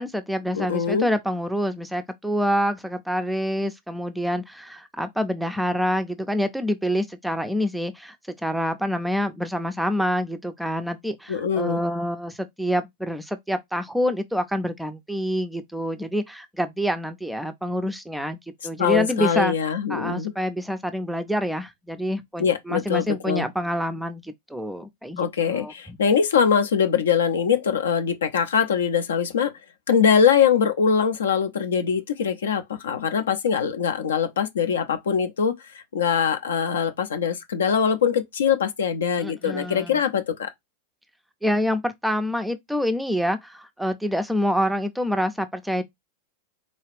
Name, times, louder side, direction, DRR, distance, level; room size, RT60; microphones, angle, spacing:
voice 1, 0.0-8.2 8.4-19.5 19.9-26.0 39.2-40.0 41.4-45.8, equal, ahead, 0.4 m, -27 dB
voice 2, 0.5-1.1 11.3-11.8 18.8-20.3 22.4-23.4 25.2-29.5 29.9-40.5, left 7 dB, 65° left, 0.5 m, -22 dB
3.8 x 2.3 x 3.3 m
figure-of-eight pair, 90°, 0 cm